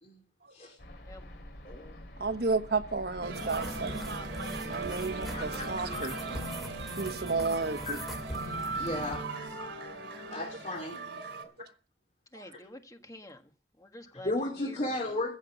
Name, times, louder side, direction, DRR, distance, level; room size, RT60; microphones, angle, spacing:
sound 1, 0.8-5.9, left 1 dB, 65° left, 2.8 m, -48 dB
voice 1, 1.6-2.0 5.3-6.1 7.9-8.0 8.8-9.3 10.2-11.0 12.5-12.7 14.2-15.3, left 2 dB, 40° left, 2.6 m, -35 dB
voice 2, 2.2-4.0 4.7-6.1 7.0-8.0 9.8-9.9 12.3-12.5, right 4 dB, 60° right, 1.2 m, -32 dB
sound 2, 3.2-11.4, right 3 dB, 90° right, 2.8 m, -38 dB
sound 3, 3.3-9.2, equal, ahead, 2.9 m, -43 dB
voice 3, 12.3-13.5 13.8-14.9, left 1 dB, 20° left, 1.5 m, -48 dB
15.0 x 6.4 x 8.0 m
head